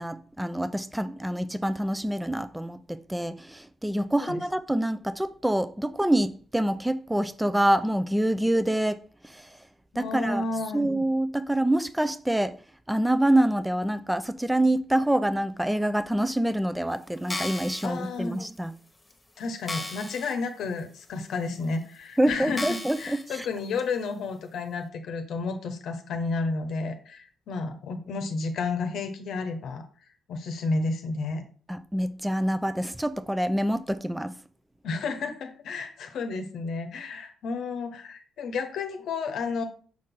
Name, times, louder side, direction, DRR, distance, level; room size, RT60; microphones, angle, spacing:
voice 1, 0.0-9.5 10.0-10.4 10.7-12.6 12.9-18.7 22.2-23.5 31.7-34.3, right 1 dB, 10° right, 0.5 m, -26 dB
voice 2, 9.9-10.9 17.8-18.4 19.4-29.8 30.3-31.4 34.8-39.6, left 3 dB, 75° left, 0.9 m, -31 dB
sound 1, 17.2-17.9 18.6-18.7 19.1-19.2 19.7-20.3 20.8-20.9 21.6-21.7 22.5-23.2 23.8-23.9, left 2 dB, 30° left, 1.2 m, -35 dB
6.3 x 4.2 x 3.7 m
supercardioid pair, 60°, 0 cm